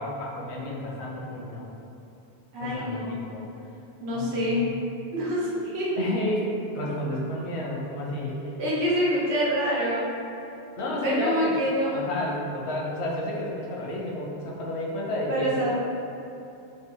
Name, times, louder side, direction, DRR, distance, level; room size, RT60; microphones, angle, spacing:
voice 1, 0.0-1.7 2.6-3.4 4.1-4.7 6.0-6.5 6.7-8.4 10.8-11.6 11.9-15.6, left 1 dB, 85° left, -3 dB, 0.9 m, -31 dB
voice 2, 2.5-3.2 4.0-4.6 5.1-5.9 8.4-10.0 10.8-12.0 15.3-15.8, equal, 80° right, -7 dB, 1.1 m, -26 dB
3.2 x 2.2 x 3.7 m, 2.8 s
omnidirectional pair, 1.1 m